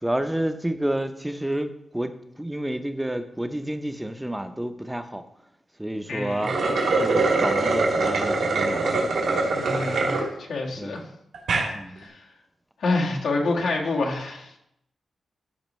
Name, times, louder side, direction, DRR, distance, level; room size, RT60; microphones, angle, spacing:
voice 1, 0.0-5.2 5.8-6.6 7.0-8.9 9.2-9.3 10.8-11.0 11.7-12.1, right 1 dB, 5° right, 0.5 m, -29 dB
voice 2, 6.1-6.4 9.5-11.0 11.9-12.2 12.8-14.5, left 3 dB, 85° left, 1.6 m, -27 dB
straw slurp, 6.3-10.2 10.7-10.8 11.3-11.7, right 3 dB, 85° right, 2.2 m, -23 dB
14.0 x 5.4 x 3.1 m
wide cardioid pair, 175°, 0 cm